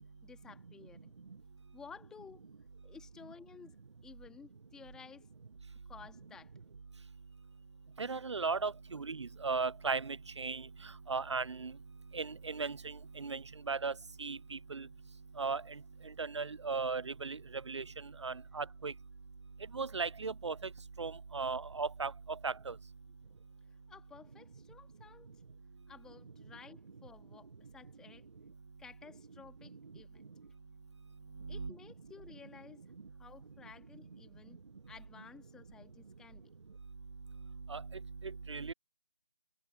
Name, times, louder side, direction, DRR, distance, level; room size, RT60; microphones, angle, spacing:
voice 1, 0.2-1.1 1.7-2.4 2.8-3.8 4.0-5.3 5.9-6.5 23.9-25.3 25.9-28.2 28.8-30.3 31.5-32.8 33.2-34.6 34.9-36.5, left 6 dB, 5° left, 2.5 m, -54 dB
voice 2, 8.0-10.7 11.1-11.7 12.1-13.9 14.2-14.9 15.4-15.8 16.2-17.4 17.7-17.8 18.2-18.9 19.7-20.6 21.0-22.7 37.7-37.8 38.2-38.7, right 4 dB, 75° right, 0.5 m, -37 dB
figure-of-eight pair, 160°, 15 cm